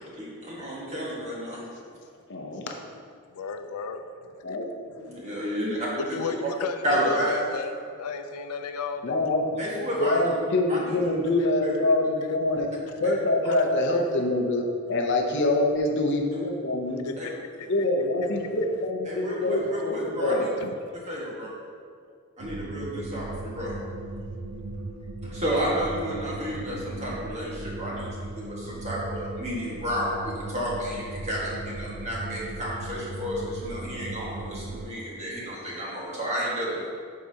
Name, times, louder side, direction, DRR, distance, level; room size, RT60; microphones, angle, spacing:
voice 1, 0.2-1.6 5.0-5.8 6.8-7.3 9.6-10.2 10.7-10.8 11.6-11.7 17.2-17.3 19.1-20.5 21.1-21.5 22.4-23.7 25.2-36.9, equal, 30° right, -6 dB, 1.6 m, -31 dB
voice 2, 2.3-2.7 4.4-4.7 9.0-9.6 10.0-17.1 17.7-20.5, left 2 dB, 55° left, 2 dB, 0.7 m, -25 dB
voice 3, 3.3-4.0 4.5-4.6 5.1-5.3 5.9-9.2 17.0-17.7 20.6-20.7, left 5 dB, 85° left, 8 dB, 0.5 m, -34 dB
sound 1, 22.4-34.9, right 2 dB, 85° right, 0.6 m, -37 dB
11.0 x 4.6 x 2.8 m, 2.2 s
head